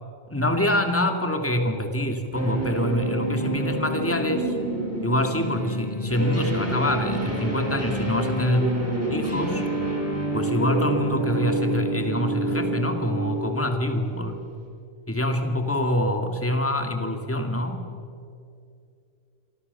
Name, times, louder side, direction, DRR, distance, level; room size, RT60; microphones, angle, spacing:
voice 1, 0.3-4.6 5.0-9.6 10.3-14.4 15.1-17.9, left 1 dB, 10° left, 5 dB, 2.4 m, -25 dB
sound 1, 2.3-14.2, right 2 dB, 10° right, 6.5 m, -29 dB
sound 2, 2.8-12.8, left 1 dB, 45° right, 2.5 m, -35 dB
28.5 x 23.5 x 7.0 m, 2.5 s
omnidirectional pair, 1.4 m